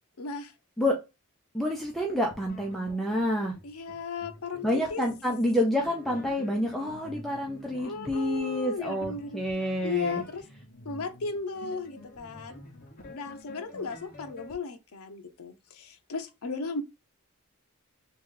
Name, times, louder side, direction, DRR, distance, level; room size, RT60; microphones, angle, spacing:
voice 1, 0.2-0.5 3.6-5.0 7.7-9.4 9.8-10.5 10.8-12.6 13.0-16.8, left 4 dB, 80° left, 0.7 m, -35 dB
voice 2, 1.5-3.5 4.6-10.2, left 1 dB, ahead, 0.6 m, -28 dB
sound 1, 1.8-14.5, left 1 dB, 40° left, 1.2 m, -48 dB
3.3 x 2.9 x 3.7 m
head